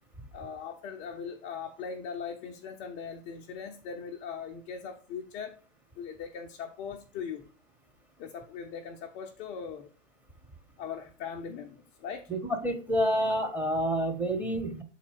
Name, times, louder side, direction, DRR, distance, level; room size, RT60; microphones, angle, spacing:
voice 1, 0.3-5.6 6.0-7.5 8.2-9.9 10.8-12.3, left 6 dB, 20° left, 0.4 m, -40 dB
voice 2, 12.3-14.8, equal, 5° right, 0.9 m, -28 dB
7.3 x 4.1 x 4.6 m
figure-of-eight pair, 110°, 37 cm